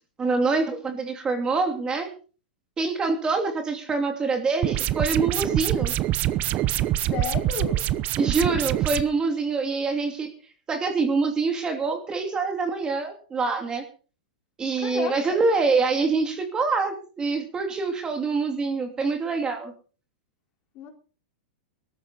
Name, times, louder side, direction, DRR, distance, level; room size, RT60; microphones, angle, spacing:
voice 1, 0.2-2.1 2.8-5.9 8.2-10.3 10.7-13.8 14.6-19.7, right 4 dB, 15° right, 4 dB, 2.7 m, -25 dB
sound 1, 4.6-9.0, right 14 dB, 30° right, 0.8 m, -25 dB
voice 2, 7.1-7.8 14.8-15.4 20.7-20.9, left 8 dB, 35° left, 3 dB, 4.2 m, -32 dB
19.0 x 14.0 x 4.1 m, 0.38 s
supercardioid pair, 150°, 5 cm